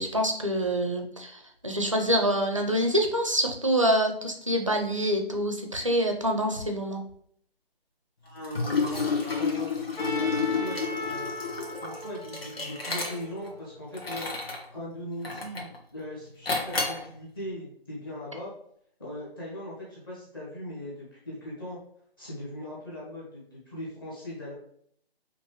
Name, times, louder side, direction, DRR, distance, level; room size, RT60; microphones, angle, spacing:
voice 1, 0.0-7.0, equal, 35° right, 3 dB, 0.5 m, -26 dB
voice 2, 8.2-11.3 11.8-14.3 14.7-18.5 19.0-21.8 22.2-24.5, left 1 dB, 20° left, -6 dB, 1.2 m, -39 dB
Liquid, 8.4-13.5 13.9-14.7 15.2-15.8 16.5-17.1, left 4 dB, 70° left, 1.5 m, -30 dB
Trumpet, 10.0-14.0, left 1 dB, 50° left, 0.8 m, -38 dB
5.5 x 2.9 x 3.0 m, 0.65 s
hypercardioid pair, 175°, 30 cm